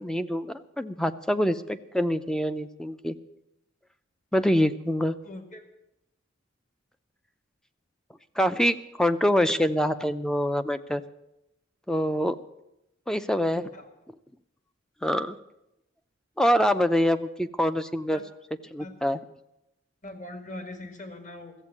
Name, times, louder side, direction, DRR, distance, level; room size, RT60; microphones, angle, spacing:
voice 1, 0.0-3.2 4.3-5.2 8.4-11.0 11.9-12.4 13.1-13.6 15.0-15.4 16.4-18.2 18.7-19.2, equal, 5° left, 12 dB, 0.5 m, -25 dB
voice 2, 5.2-5.7 13.5-13.9 18.1-18.2 18.8-18.9 20.0-21.5, left 2 dB, 40° left, 7 dB, 1.9 m, -41 dB
14.5 x 8.0 x 9.6 m, 0.86 s
head